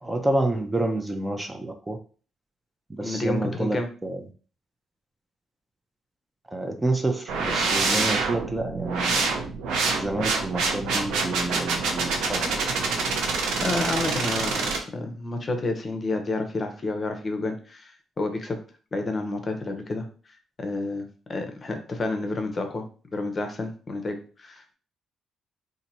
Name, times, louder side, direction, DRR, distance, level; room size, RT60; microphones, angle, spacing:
voice 1, 0.0-2.0 2.9-4.2 6.5-9.2 9.9-12.7, right 2 dB, 15° right, 5 dB, 0.5 m, -28 dB
voice 2, 3.0-3.9 13.6-18.6 18.9-20.1 20.6-22.8 23.1-24.7, left 2 dB, 35° left, 5 dB, 0.7 m, -30 dB
sound 1, 7.3-14.8, right 4 dB, 85° right, 0.8 m, -26 dB
2.8 x 2.6 x 4.1 m, 0.39 s
cardioid pair, 90°, 0 cm